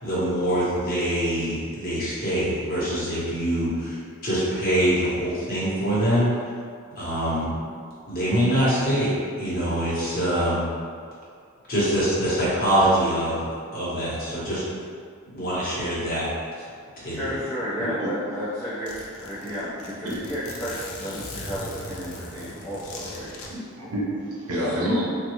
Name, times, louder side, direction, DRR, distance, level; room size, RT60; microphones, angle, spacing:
voice 1, 0.0-6.3 7.0-7.5 8.1-9.1 9.4-10.7 11.7-13.4 13.7-14.6 15.3-16.3 17.0-17.4, right 1 dB, 40° left, -9 dB, 0.9 m, -24 dB
voice 2, 17.1-23.3 24.5-25.1, equal, 10° left, -15 dB, 0.6 m, -32 dB
Zipper (clothing), 18.4-18.5 18.9-23.5, left 2 dB, 70° left, 0.5 m, -39 dB
voice 3, 23.5-25.1, equal, 90° right, -4 dB, 0.7 m, -28 dB
3.2 x 2.2 x 2.9 m, 2.1 s
head